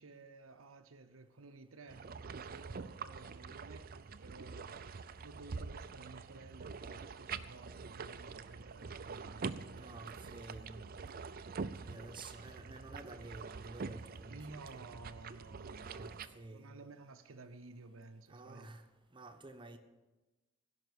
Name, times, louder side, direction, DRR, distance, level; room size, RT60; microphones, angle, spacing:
voice 1, 0.0-4.9 5.2-11.0 14.3-18.7, right 3 dB, 80° right, 6 dB, 0.7 m, -54 dB
sound 1, 1.9-16.3, right 5 dB, 45° right, 0.5 m, -45 dB
voice 2, 9.8-10.8 11.8-14.9 15.8-16.8 18.3-18.8 19.1-19.8, right 2 dB, 25° right, 6 dB, 1.1 m, -51 dB
16.5 x 5.8 x 9.6 m, 1.1 s
head